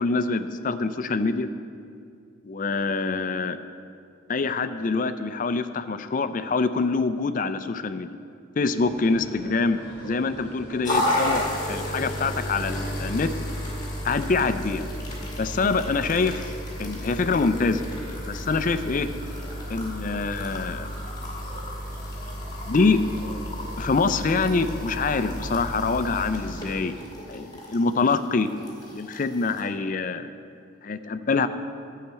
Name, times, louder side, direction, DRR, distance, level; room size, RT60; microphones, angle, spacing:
voice 1, 0.0-1.5 2.4-3.6 4.3-8.2 8.6-13.3 14.0-14.8 15.4-16.5 16.8-17.8 18.3-19.1 19.7-20.9 22.7-23.0 23.8-26.9 27.3-28.5 28.9-30.3 30.8-31.5, left 4 dB, 40° left, 11 dB, 0.4 m, -25 dB
sound 1, 8.7-27.0, equal, 30° right, 3.2 m, -44 dB
sound 2, 10.8-29.6, equal, 20° left, 2.1 m, -33 dB
12.0 x 5.7 x 8.0 m, 2.4 s
head